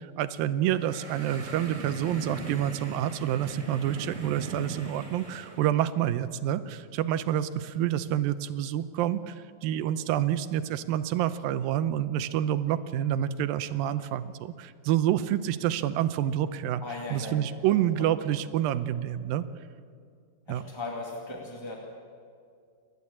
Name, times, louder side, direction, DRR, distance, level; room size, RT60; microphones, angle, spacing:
voice 1, 0.0-16.8 17.1-19.5 20.5-20.6, right 11 dB, 85° right, 13 dB, 2.5 m, -28 dB
sound 1, 0.7-5.7, right 3 dB, 25° right, 1.8 m, -39 dB
voice 2, 16.8-18.2 20.5-21.8, left 2 dB, 10° left, -2 dB, 1.6 m, -38 dB
29.0 x 12.0 x 8.5 m, 2.2 s
omnidirectional pair, 4.1 m